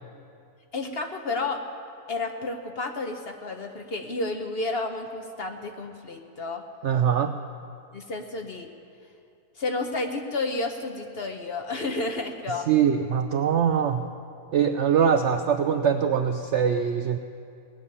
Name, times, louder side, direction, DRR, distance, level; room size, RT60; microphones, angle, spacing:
voice 1, 0.7-1.6 2.1-6.6 7.9-8.7 9.5-12.7, left 3 dB, 45° left, 5 dB, 0.9 m, -31 dB
voice 2, 6.8-7.3 12.7-14.0 14.5-17.2, right 8 dB, 70° right, 8 dB, 0.7 m, -22 dB
18.5 x 7.2 x 9.7 m, 2.5 s
omnidirectional pair, 1.7 m